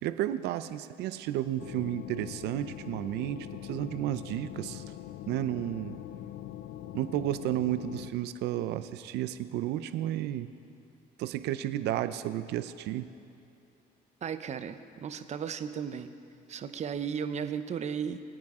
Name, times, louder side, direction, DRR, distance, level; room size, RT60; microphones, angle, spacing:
voice 1, 0.0-4.8 5.3-6.0 6.9-10.5 11.2-13.1, right 13 dB, 80° right, 12 dB, 0.6 m, -32 dB
sound 1, 1.6-8.1, left 12 dB, 80° left, 0.6 m, -43 dB
voice 2, 14.2-16.1 16.5-18.2, right 7 dB, 40° right, 10 dB, 0.7 m, -35 dB
24.0 x 9.0 x 3.7 m, 2.7 s
cardioid pair, 110°, 17 cm